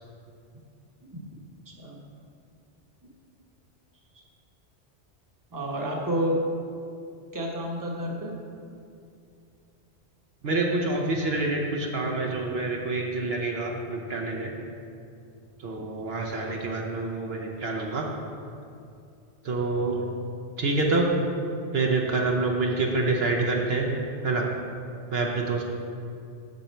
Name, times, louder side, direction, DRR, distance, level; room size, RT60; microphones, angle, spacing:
voice 1, 5.5-6.4 7.3-8.3, equal, 20° right, -2 dB, 1.0 m, -29 dB
voice 2, 10.4-14.5 15.6-18.1 19.4-20.1 20.6-21.1 21.7-23.9 24.2-24.5 25.1-25.7, right 3 dB, 65° right, 0 dB, 1.1 m, -27 dB
8.1 x 7.2 x 4.4 m, 2.5 s
omnidirectional pair, 1.2 m